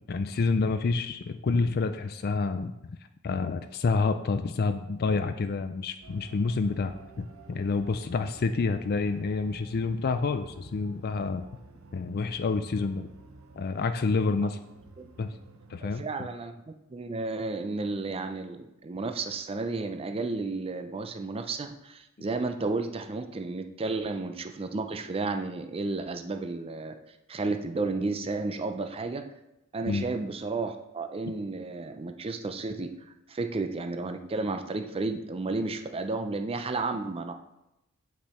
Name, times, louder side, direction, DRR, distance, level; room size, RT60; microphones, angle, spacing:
voice 1, 0.0-3.0 3.2-11.5 11.9-13.1 13.5-14.6 15.2-15.3 15.7-16.1 29.9-30.1, left 4 dB, 50° left, 9 dB, 0.4 m, -28 dB
sound 1, 6.0-16.0, right 2 dB, 80° right, 0.8 m, -52 dB
voice 2, 15.8-16.6 16.9-27.0 27.3-29.3 29.7-32.9 33.3-37.3, right 3 dB, 25° right, 7 dB, 0.5 m, -32 dB
8.2 x 6.0 x 4.3 m, 0.90 s
head